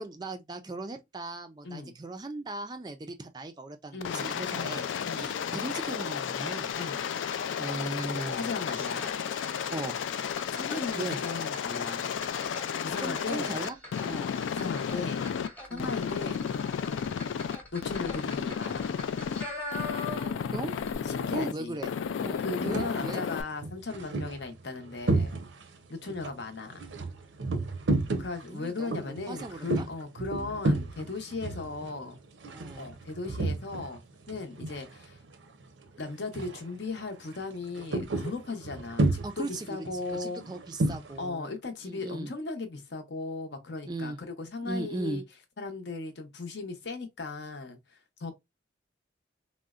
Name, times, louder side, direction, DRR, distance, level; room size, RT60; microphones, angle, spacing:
voice 1, 0.0-6.8 7.6-8.5 9.7-10.0 11.0-11.2 13.0-13.8 14.0-14.3 15.7-16.0 20.5-20.8 21.3-21.9 22.2-23.2 28.5-29.9 32.5-32.9 39.2-39.9 40.1-41.5 41.8-42.3 43.9-44.2 44.6-45.2, right 2 dB, 20° right, 0.3 m, -38 dB
voice 2, 1.6-2.0 3.9-5.4 6.7-7.0 8.0-9.1 10.5-12.2 12.8-13.6 14.5-15.3 15.7-16.6 17.7-18.9 21.1-21.8 22.4-25.4 25.9-26.9 28.2-32.2 32.8-34.0 34.3-35.2 36.0-40.4 41.2-45.2 45.6-48.3, left 3 dB, 65° left, 0.7 m, -37 dB
Aircraft, 4.0-15.5 15.8-17.6 17.8-19.4 19.7-21.5 21.8-23.4, left 7 dB, 85° left, 0.3 m, -33 dB
sound 1, 6.7-20.5 20.8-20.9, left 2 dB, 10° left, 0.8 m, -43 dB
sound 2, 22.6-23.0 23.5-25.8 26.1-34.0 34.2-35.3 35.6-35.9 36.3-36.7 37.0-41.2, right 2 dB, 85° right, 0.6 m, -32 dB
3.7 x 2.1 x 2.3 m
head